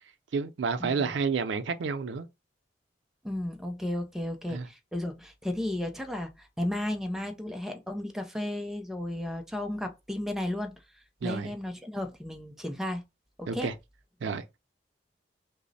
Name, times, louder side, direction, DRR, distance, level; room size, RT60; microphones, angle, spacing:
voice 1, 0.3-2.3 4.5-4.7 11.2-11.5 13.5-13.7 14.2-14.4, right 5 dB, 75° right, 0.4 m, -30 dB
voice 2, 3.2-10.7 11.2-13.0 13.4-13.7, left 1 dB, ahead, 0.4 m, -34 dB
3.1 x 2.0 x 3.9 m
head